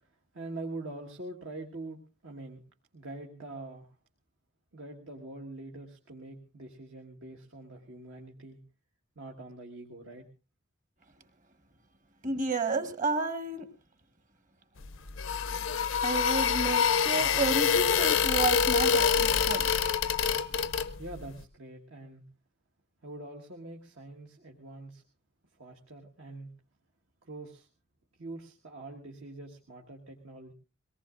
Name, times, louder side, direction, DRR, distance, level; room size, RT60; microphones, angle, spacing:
voice 1, 0.3-2.6 2.9-3.9 4.7-8.6 9.1-10.3 21.0-22.2 23.0-25.0 25.6-26.5 27.2-27.7 28.2-30.5, right 2 dB, 70° right, 0 dB, 1.6 m, -44 dB
voice 2, 12.2-13.6 15.9-19.7, right 3 dB, 40° right, 9 dB, 1.5 m, -31 dB
sound 1, 14.8-21.3, left 7 dB, 80° left, 0.7 m, -26 dB
22.5 x 18.5 x 2.5 m, 0.31 s
head